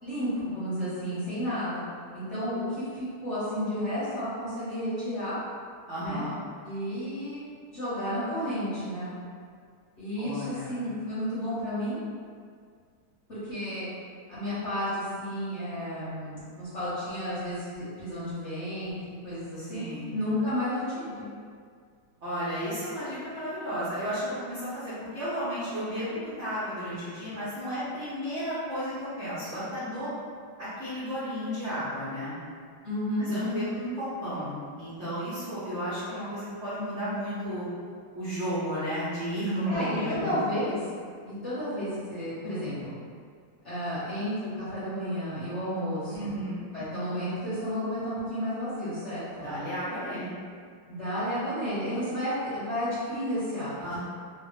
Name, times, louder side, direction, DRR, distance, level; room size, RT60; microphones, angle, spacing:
voice 1, 0.0-1.8 2.1-5.4 6.0-6.3 6.6-9.1 10.0-12.0 13.3-13.9 14.3-18.9 19.2-19.8 20.1-21.3 32.8-33.3 39.7-40.8 41.2-43.0 43.6-46.3 46.7-49.5 50.9-53.8, equal, 45° left, -13 dB, 1.0 m, -32 dB
voice 2, 5.9-6.3 10.2-10.8 19.6-20.1 22.2-30.1 30.6-32.3 33.2-37.7 38.1-40.3 46.1-46.6 49.4-50.3 53.8-54.0, equal, 80° right, -12 dB, 0.6 m, -33 dB
3.4 x 2.3 x 3.0 m, 2.1 s
omnidirectional pair, 2.4 m